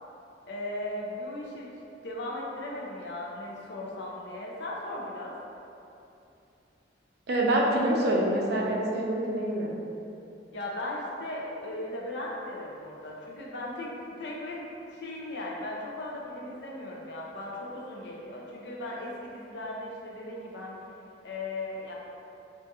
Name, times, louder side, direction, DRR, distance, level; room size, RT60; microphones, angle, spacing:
voice 1, 0.5-1.7 2.0-5.4 10.5-14.6 14.9-20.8 21.2-21.9, left 1 dB, 65° left, -3 dB, 0.5 m, -37 dB
voice 2, 7.3-9.8, right 1 dB, 60° right, -2 dB, 0.5 m, -26 dB
2.5 x 2.4 x 3.9 m, 2.7 s
head